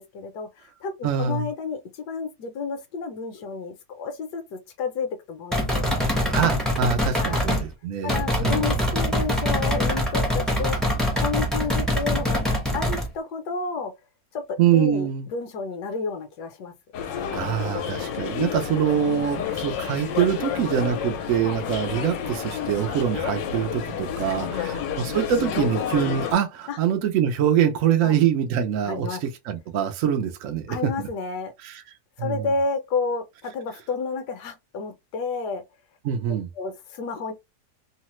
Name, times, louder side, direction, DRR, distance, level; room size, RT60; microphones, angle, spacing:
voice 1, 0.0-6.1 7.2-7.6 8.0-10.8 11.2-12.4 12.7-13.9 14.3-16.7 24.4-24.8 26.7-26.8 28.0-28.2 28.9-29.2 30.7-31.5 32.2-35.6 36.6-37.3, left 4 dB, 70° left, 1.2 m, -31 dB
voice 2, 1.0-1.5 6.3-8.8 14.6-15.3 17.3-31.1 31.6-31.8 32.2-32.5 36.0-36.5, right 9 dB, 75° right, 0.7 m, -24 dB
sound 1, 5.5-7.7 8.1-13.1, left 1 dB, ahead, 0.5 m, -24 dB
sound 2, 16.9-26.3, left 8 dB, 90° left, 1.3 m, -30 dB
3.1 x 2.1 x 2.9 m
omnidirectional pair, 1.9 m